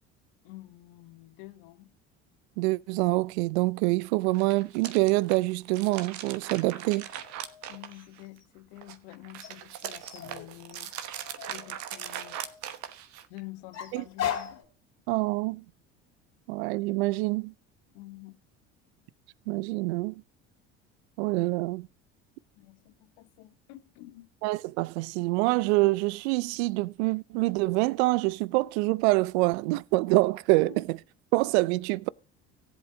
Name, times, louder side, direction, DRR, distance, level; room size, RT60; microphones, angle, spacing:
voice 1, 0.4-1.9 7.7-10.9 11.5-12.4 13.3-14.7 17.9-18.4 22.6-24.3 30.6-30.8, left 18 dB, 70° left, 1.0 m, -48 dB
voice 2, 2.6-7.1 13.9-14.0 15.1-15.6 16.5-17.5 19.5-20.2 21.2-21.9 24.4-31.0 31.3-32.1, right 22 dB, 75° right, 0.5 m, -26 dB
sound 1, 4.2-8.4 8.8-13.4, right 11 dB, 60° right, 1.1 m, -40 dB
sound 2, 6.4-8.4 9.4-12.6 13.7-14.6, left 9 dB, 55° left, 2.4 m, -39 dB
18.0 x 8.1 x 2.7 m
hypercardioid pair, 70°, 33 cm